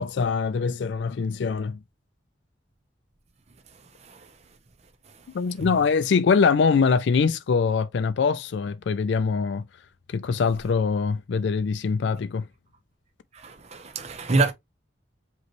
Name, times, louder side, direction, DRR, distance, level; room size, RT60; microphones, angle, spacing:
voice 1, 0.0-1.8 5.3-9.6 10.1-12.5, left 5 dB, 70° left, 0.4 m, -23 dB
voice 2, 4.0-4.3 5.6-5.7 13.3-14.5, right 3 dB, 35° right, 0.7 m, -26 dB
5.2 x 3.1 x 3.0 m
head